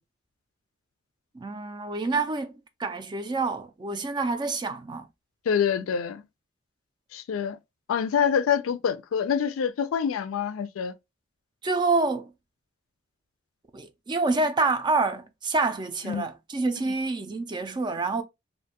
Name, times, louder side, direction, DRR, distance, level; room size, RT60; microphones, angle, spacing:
voice 1, 1.3-5.1 11.6-12.3 13.7-18.2, right 3 dB, 20° right, 0.3 m, -27 dB
voice 2, 5.5-6.2 7.1-7.6 7.9-10.9 16.0-16.3, left 7 dB, 85° left, 0.3 m, -26 dB
2.5 x 2.2 x 2.8 m
head